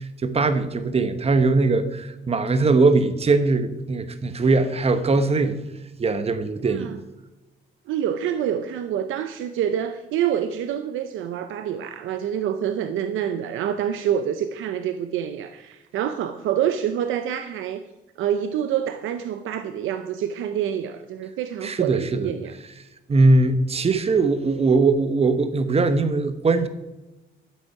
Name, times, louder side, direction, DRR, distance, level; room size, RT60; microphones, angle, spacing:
voice 1, 0.0-5.6 6.0-6.9 21.6-22.3 23.1-26.7, right 3 dB, 30° right, 10 dB, 1.1 m, -20 dB
voice 2, 6.6-7.0 7.9-17.9 18.2-22.5, right 9 dB, 85° right, 10 dB, 0.7 m, -27 dB
12.0 x 7.9 x 5.8 m, 1.0 s
cardioid pair, 90°, 20 cm